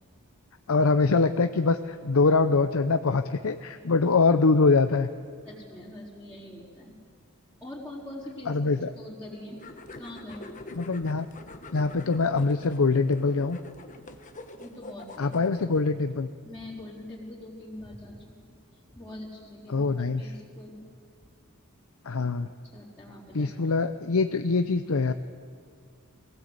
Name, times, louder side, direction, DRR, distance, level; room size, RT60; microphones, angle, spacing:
voice 1, 0.7-5.1 8.5-8.9 10.8-11.3 11.7-13.6 15.2-16.3 19.7-20.2 22.0-22.5 23.3-25.1, left 4 dB, 65° left, 9 dB, 0.7 m, -23 dB
voice 2, 5.4-7.0 7.6-8.5 8.9-9.6 10.0-10.6 14.6-15.3 16.4-18.5 18.9-20.8 22.6-23.5, left 1 dB, 10° left, -11 dB, 4.2 m, -43 dB
sound 1, 9.6-15.8, left 2 dB, 35° left, 1.3 m, -45 dB
22.0 x 18.0 x 8.1 m, 2.1 s
head